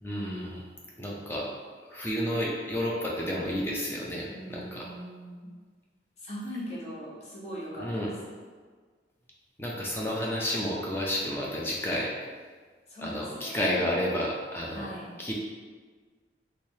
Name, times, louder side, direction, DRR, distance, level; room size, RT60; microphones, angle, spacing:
voice 1, 0.0-0.6 1.0-1.5 1.9-4.9 7.8-8.1 9.6-12.1 13.0-14.9 15.2-15.3, equal, 15° left, -4 dB, 0.4 m, -31 dB
voice 2, 4.3-5.5 6.2-8.1 12.9-13.8 14.7-15.2, equal, 35° left, -7 dB, 0.9 m, -40 dB
3.3 x 3.1 x 2.7 m, 1.5 s
head